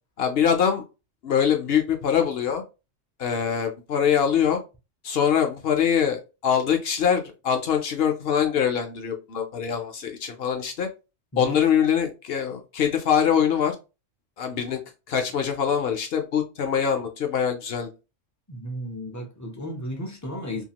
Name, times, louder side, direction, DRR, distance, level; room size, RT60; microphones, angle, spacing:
voice 1, 0.2-0.8 1.2-2.6 3.2-4.6 5.0-10.9 11.4-13.8 14.4-14.8 15.1-17.9, left 8 dB, 60° left, 0.7 m, -23 dB
voice 2, 18.5-20.6, equal, 30° left, 0.3 m, -34 dB
2.8 x 2.3 x 2.8 m
omnidirectional pair, 1.3 m